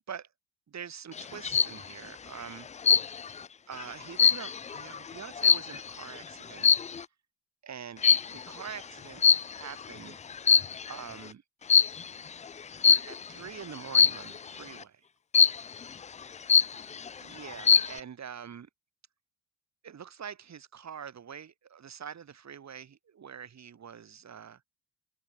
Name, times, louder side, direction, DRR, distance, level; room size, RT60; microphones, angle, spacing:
voice 1, 0.7-3.0 3.7-6.8 7.6-10.2 10.9-11.4 12.8-15.0 17.2-18.7 19.8-24.6, right 7 dB, 45° right, 4.7 m, -45 dB
sound 1, 1.2-1.8 2.8-3.4 3.8-6.0 6.6-7.0 8.0-8.4 9.2-9.8 10.3-11.0 11.7-12.1 12.8-13.2 13.9-14.4 15.3-15.8 16.2-16.3 16.5-17.1 17.5-18.0, left 6 dB, 20° left, 0.4 m, -22 dB
open air
supercardioid pair, 80°, 39 cm